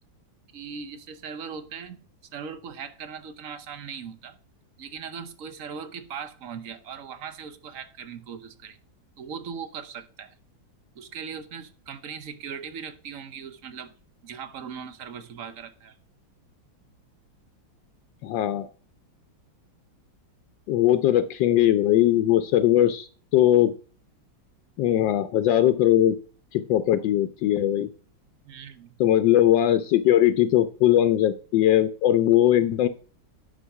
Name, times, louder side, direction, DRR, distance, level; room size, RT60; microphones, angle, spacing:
voice 1, 0.5-2.0 2.3-4.4 4.8-8.8 9.2-10.3 10.9-13.9 14.2-16.0 28.4-28.9, right 6 dB, 55° right, 1.0 m, -39 dB
voice 2, 18.2-18.7 20.7-23.1 23.3-23.7 24.8-26.2 26.5-27.9 29.0-32.9, left 12 dB, 75° left, 1.3 m, -20 dB
10.0 x 5.7 x 4.7 m
omnidirectional pair, 2.1 m